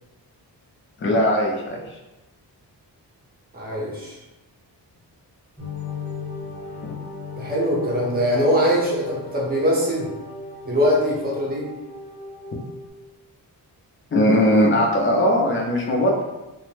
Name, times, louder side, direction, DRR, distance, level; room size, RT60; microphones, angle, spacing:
voice 1, 1.0-1.8 14.1-16.2, equal, 30° left, 0 dB, 0.4 m, -19 dB
voice 2, 3.5-4.2 7.4-10.1 10.6-11.6, equal, 20° right, -4 dB, 0.7 m, -22 dB
sound 1, 5.6-12.9, left 4 dB, 5° left, 0.9 m, -36 dB
2.6 x 2.0 x 3.1 m, 1.0 s
wide cardioid pair, 135°, 42 cm